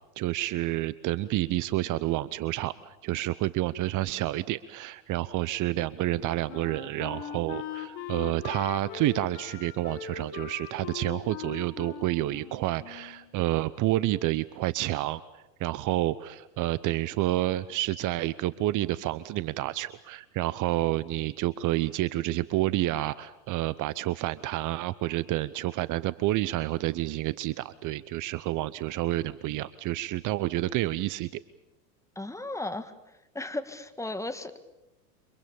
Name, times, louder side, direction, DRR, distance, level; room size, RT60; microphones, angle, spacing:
voice 1, 0.2-31.4, right 16 dB, 40° right, 17 dB, 0.9 m, -29 dB
Wind instrument woodwind instrument, 6.0-13.3, left 10 dB, 55° left, 5.5 m, -40 dB
voice 2, 32.2-32.9 33.4-34.5, left 2 dB, 5° left, 10 dB, 1.9 m, -35 dB
29.0 x 25.5 x 7.1 m, 0.94 s
hypercardioid pair, 100°, 47 cm